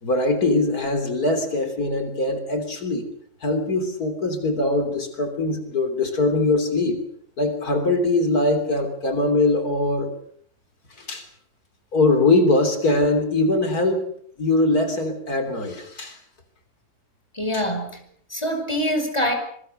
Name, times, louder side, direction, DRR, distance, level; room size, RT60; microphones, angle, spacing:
voice 1, 0.0-3.1 3.4-7.0 7.4-10.1 11.0-11.3 11.9-14.1 14.4-16.2 17.5-17.6, left 2 dB, 85° left, 8 dB, 3.9 m, -22 dB
voice 2, 17.3-18.0 18.3-19.3, equal, 20° left, 6 dB, 5.2 m, -24 dB
26.0 x 23.5 x 6.6 m, 0.65 s
omnidirectional pair, 1.6 m